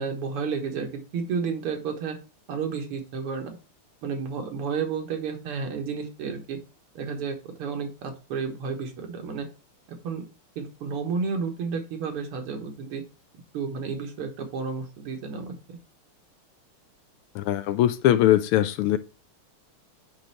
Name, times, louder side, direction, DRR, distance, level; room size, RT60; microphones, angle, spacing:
voice 1, 0.0-2.2 2.5-3.6 4.0-6.6 7.0-9.5 10.0-10.3 10.6-13.0 13.5-15.8, right 5 dB, 80° right, 2.3 m, -31 dB
voice 2, 17.3-19.0, left 12 dB, 80° left, 1.5 m, -21 dB
9.0 x 3.1 x 5.7 m
omnidirectional pair, 2.4 m